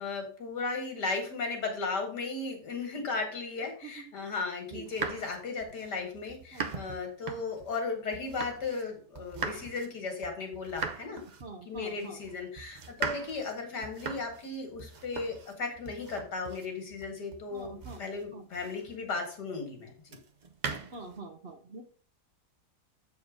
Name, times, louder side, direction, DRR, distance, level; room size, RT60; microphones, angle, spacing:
voice 1, 0.0-11.2 11.7-20.2, left 4 dB, 80° left, 3 dB, 2.5 m, -36 dB
sound 1, 4.7-8.9 9.1-19.1 20.1-21.2, right 5 dB, 75° right, 0.4 m, -41 dB
voice 2, 11.4-12.2 17.5-18.0 18.3-18.4 20.9-21.8, right 2 dB, 45° right, 4 dB, 1.0 m, -44 dB
7.7 x 4.6 x 5.0 m, 0.41 s
omnidirectional pair, 1.8 m